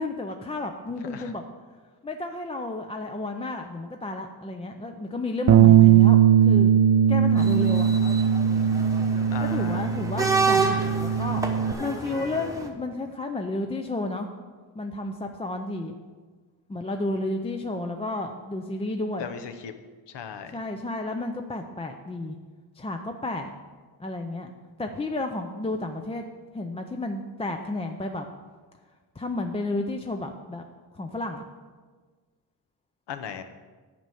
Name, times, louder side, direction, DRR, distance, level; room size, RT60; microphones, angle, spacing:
voice 1, 0.0-1.4 2.0-6.7 7.1-7.9 9.4-11.4 11.8-14.3 14.8-16.0 16.7-19.3 20.5-22.4 22.8-23.5 24.0-24.5 24.8-26.2 26.5-28.3 29.2-30.6 30.9-31.4, left 2 dB, 15° left, 4 dB, 0.4 m, -32 dB
Bass guitar, 5.5-11.7, right 9 dB, 45° right, 0.4 m, -19 dB
sound 1, 7.4-12.7, right 4 dB, 10° right, 0.9 m, -29 dB
voice 2, 9.3-9.9 19.2-19.7 20.1-20.6 33.1-33.4, left 7 dB, 75° left, 9 dB, 1.0 m, -37 dB
10.5 x 5.5 x 7.7 m, 1.4 s
wide cardioid pair, 165°, 42 cm